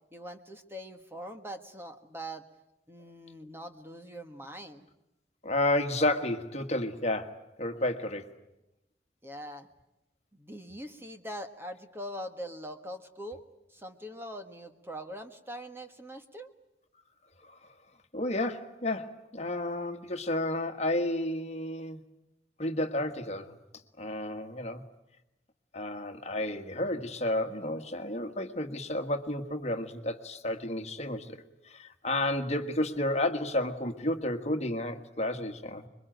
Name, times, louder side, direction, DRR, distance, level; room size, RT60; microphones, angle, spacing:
voice 1, 0.1-2.4 2.9-4.8 9.2-9.7 10.3-13.4 13.7-16.5, equal, 15° right, 6 dB, 1.5 m, -42 dB
voice 2, 5.4-8.3 17.5-17.6 18.1-22.0 22.6-23.6 24.0-24.8 25.7-31.4 31.7-35.9, left 1 dB, 40° left, 8 dB, 1.6 m, -31 dB
26.5 x 23.0 x 9.2 m, 0.92 s
head